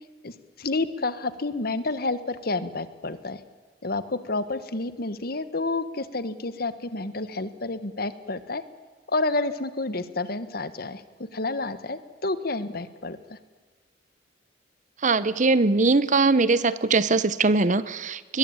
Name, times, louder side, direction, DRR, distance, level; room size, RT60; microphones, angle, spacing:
voice 1, 0.2-3.4 3.8-8.6 9.1-11.0 11.3-13.4, left 2 dB, 55° left, 14 dB, 1.4 m, -29 dB
voice 2, 15.0-18.4, right 3 dB, 45° right, 17 dB, 0.9 m, -21 dB
21.0 x 21.0 x 8.8 m, 1.4 s
head